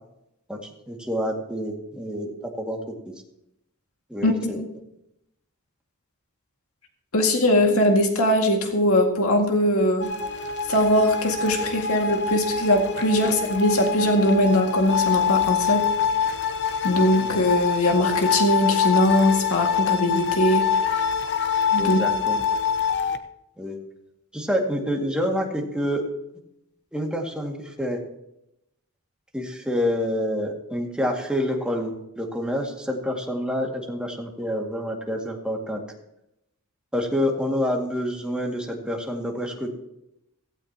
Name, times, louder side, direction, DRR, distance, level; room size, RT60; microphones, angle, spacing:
voice 1, 0.9-2.9 4.1-4.6 13.2-13.3 17.2-17.3 21.8-22.4 23.6-23.8 24.3-26.0 26.9-28.0 29.3-35.8 36.9-39.7, equal, 5° right, 0 dB, 2.1 m, -27 dB
voice 2, 4.2-4.7 7.1-10.1 10.7-15.9 16.2-16.3 16.8-20.7 21.7-22.0, left 1 dB, 75° left, 2 dB, 2.1 m, -21 dB
sound 1, 10.0-23.2, left 6 dB, 55° left, 0.9 m, -25 dB
17.0 x 16.0 x 2.9 m, 0.83 s
head